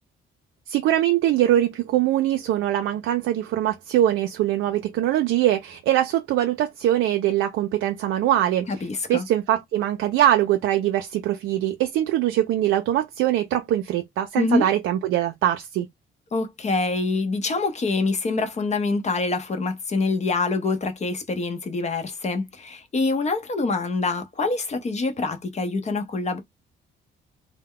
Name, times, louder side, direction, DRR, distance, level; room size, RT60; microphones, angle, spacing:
voice 1, 0.7-8.7 9.1-15.9, right 12 dB, 80° right, 0.4 m, -22 dB
voice 2, 8.7-9.3 14.4-14.7 16.3-26.4, left 3 dB, 35° left, 0.7 m, -25 dB
2.2 x 2.1 x 3.5 m
cardioid pair, 90°, 20 cm